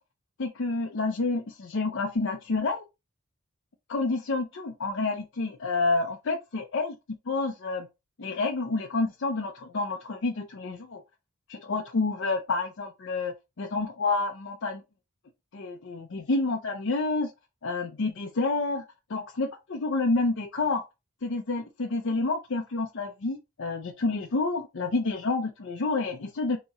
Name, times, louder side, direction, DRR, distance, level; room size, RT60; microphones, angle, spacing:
voice 1, 0.4-2.8 3.9-7.0 7.3-7.9 8.2-11.0 11.5-14.8 15.5-17.3 17.6-18.8 19.1-20.8 21.2-26.6, left 3 dB, 65° left, 0.6 m, -29 dB
4.1 x 2.9 x 3.6 m
head